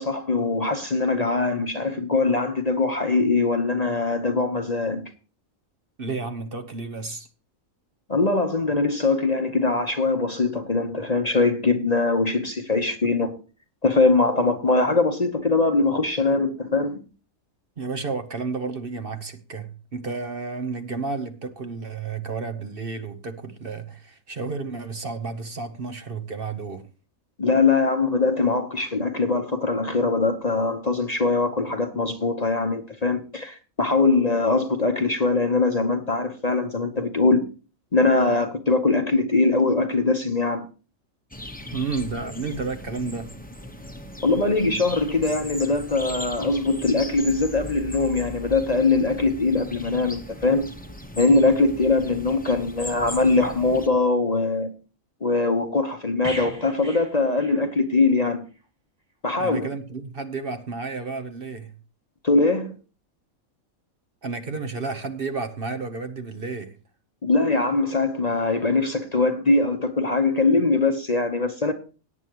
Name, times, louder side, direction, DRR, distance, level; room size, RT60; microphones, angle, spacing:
voice 1, 0.0-5.1 8.1-13.4 13.8-17.0 27.4-37.4 37.9-40.6 44.2-50.7 51.2-54.7 55.2-58.4 59.2-59.7 62.2-62.7 67.2-71.7, left 3 dB, 30° left, 1.0 m, -22 dB
voice 2, 6.0-7.3 17.8-26.9 41.7-43.3 59.4-61.7 64.2-66.8, right 4 dB, 45° right, 1.1 m, -31 dB
sound 1, 41.3-53.9, equal, 5° left, 0.9 m, -38 dB
sound 2, 56.2-58.1 58.4-58.6, right 1 dB, 30° right, 2.2 m, -38 dB
17.0 x 9.2 x 3.0 m
omnidirectional pair, 1.4 m